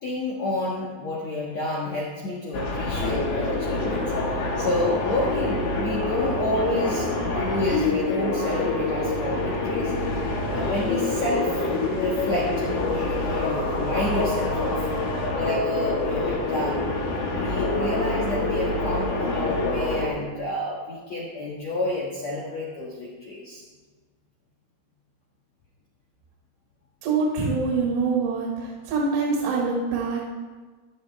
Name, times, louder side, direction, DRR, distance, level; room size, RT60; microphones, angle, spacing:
voice 1, 0.0-9.9 10.5-11.6 11.9-14.9 15.3-16.8 17.3-23.6, left 1 dB, 80° left, -4 dB, 1.5 m, -29 dB
sound 1, 2.5-20.1, left 2 dB, 55° left, 3.2 m, -26 dB
sound 2, 9.9-15.3, equal, 35° left, 2.8 m, -42 dB
voice 2, 27.0-30.3, right 4 dB, 75° right, -3 dB, 4.3 m, -25 dB
15.0 x 11.5 x 3.5 m, 1.4 s
omnidirectional pair, 5.6 m